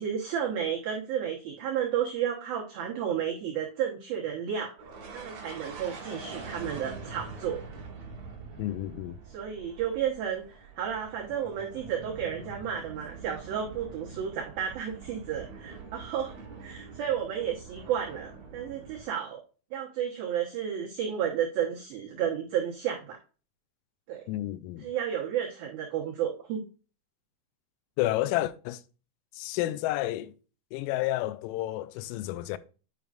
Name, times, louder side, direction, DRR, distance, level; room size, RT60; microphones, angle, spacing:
voice 1, 0.0-4.7 5.1-7.6 9.3-16.3 16.6-19.4 19.7-23.2 24.1-24.2 24.8-26.7, right 9 dB, 85° right, 2.1 m, -32 dB
sound 1, 4.8-19.0, right 4 dB, 50° right, 2.3 m, -45 dB
voice 2, 8.6-9.2 24.3-24.9 28.0-28.8 29.3-30.3 30.7-32.6, left 15 dB, 85° left, 3.1 m, -30 dB
9.9 x 5.1 x 2.4 m
omnidirectional pair, 6.0 m